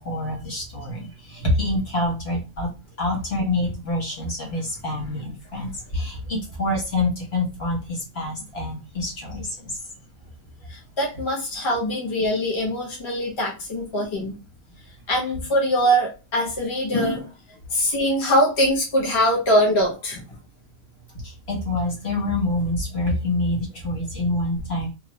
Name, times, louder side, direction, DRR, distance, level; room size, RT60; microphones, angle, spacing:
voice 1, 0.0-2.7 3.0-9.8 21.2-24.9, left 1 dB, 50° left, -2 dB, 1.3 m, -26 dB
voice 2, 10.7-14.3 15.1-17.3 17.7-20.2, equal, 25° left, -2 dB, 1.0 m, -22 dB
3.0 x 2.5 x 3.0 m, 0.29 s
omnidirectional pair, 1.5 m